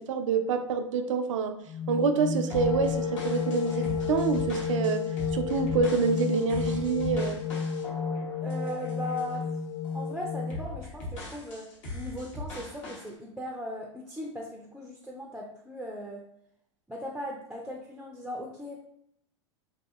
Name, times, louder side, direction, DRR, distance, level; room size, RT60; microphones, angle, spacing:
voice 1, 0.0-1.5 1.9-5.0 5.3-7.4, right 5 dB, 80° right, 8 dB, 0.4 m, -27 dB
sound 1, 1.6-10.5, left 6 dB, 45° left, 1.1 m, -31 dB
sound 2, 2.5-9.5 9.8-10.1 10.5-13.1, left 2 dB, 80° left, 1.0 m, -40 dB
voice 2, 8.4-9.6 9.9-16.2 16.9-18.8, equal, 5° right, -1 dB, 0.3 m, -38 dB
2.7 x 2.6 x 2.4 m, 0.74 s
hypercardioid pair, 100°, 16 cm